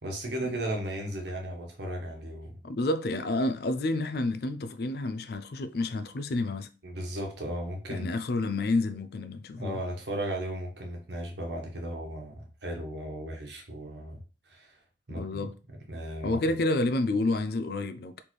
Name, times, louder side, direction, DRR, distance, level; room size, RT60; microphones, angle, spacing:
voice 1, 0.0-2.6 6.8-8.1 9.6-14.2 14.5-14.7 15.1-15.4 15.9-16.6, right 1 dB, 70° right, 1.2 m, -35 dB
voice 2, 2.6-6.7 7.9-9.8 15.1-15.6 16.2-18.2, left 2 dB, 60° left, 0.5 m, -29 dB
4.2 x 3.4 x 3.1 m
head